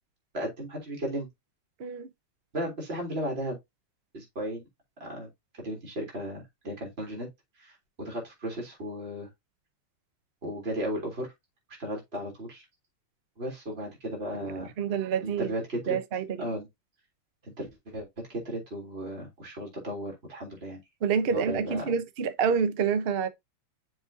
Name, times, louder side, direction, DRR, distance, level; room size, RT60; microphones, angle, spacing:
voice 1, 0.3-1.3 2.5-3.6 4.1-4.7 5.0-5.3 5.5-7.3 7.6-9.3 10.4-11.3 11.8-12.6 13.4-14.7 15.2-16.0 16.4-16.7 17.6-20.8 21.3-21.8, right 1 dB, 30° right, 3.7 m, -35 dB
voice 2, 14.8-15.5 15.9-16.5 21.0-23.3, right 6 dB, 50° right, 0.7 m, -27 dB
7.2 x 5.3 x 2.8 m
omnidirectional pair, 2.1 m